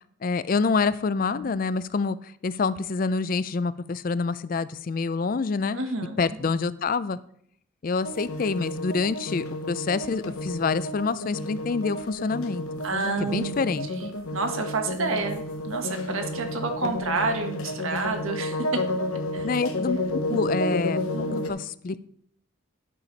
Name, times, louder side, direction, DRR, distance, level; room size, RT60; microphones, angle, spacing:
voice 1, 0.2-2.2 2.4-5.8 6.2-7.2 7.8-12.8 13.2-13.9 19.4-20.0 20.3-21.0 21.5-22.1, left 4 dB, 40° left, 16 dB, 0.4 m, -27 dB
voice 2, 5.7-6.4 12.8-13.6 13.9-18.8 19.1-19.5 20.3-20.4 21.1-21.5, right 3 dB, 75° right, 5 dB, 1.4 m, -30 dB
sound 1, 8.0-21.5, left 1 dB, 90° left, 1.1 m, -31 dB
11.0 x 6.7 x 4.0 m, 0.66 s
head